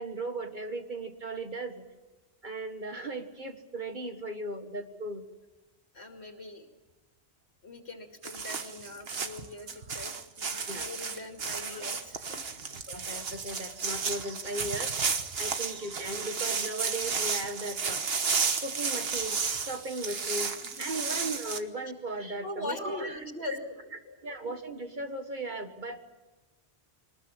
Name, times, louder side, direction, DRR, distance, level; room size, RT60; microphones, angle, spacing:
voice 1, 0.0-1.9 2.4-5.2 10.7-10.9 11.7-11.8 12.7-18.0 18.6-23.2 24.2-26.0, right 2 dB, 45° right, 6 dB, 1.9 m, -37 dB
voice 2, 5.9-6.7 7.6-12.3 22.4-23.8 24.1-24.2, left 2 dB, 80° left, 3 dB, 2.6 m, -41 dB
sound 1, 8.2-21.6, right 5 dB, 65° right, 1.5 m, -33 dB
24.0 x 19.5 x 7.5 m, 1.2 s
omnidirectional pair, 1.1 m